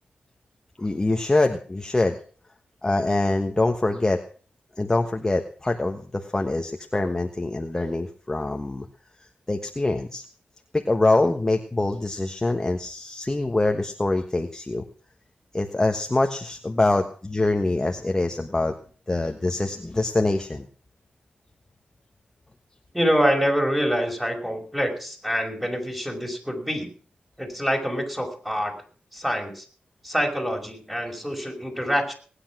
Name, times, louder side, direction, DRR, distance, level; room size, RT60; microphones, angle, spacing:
voice 1, 0.8-2.2 2.8-4.2 4.8-8.8 9.5-10.2 10.7-14.8 15.5-18.7 19.1-20.7, left 2 dB, 20° left, 4 dB, 1.3 m, -24 dB
voice 2, 22.9-26.9 27.4-28.7 29.1-29.7 30.0-32.1, equal, 5° right, 2 dB, 5.4 m, -25 dB
19.0 x 9.9 x 6.1 m, 0.43 s
wide cardioid pair, 100°, 3 cm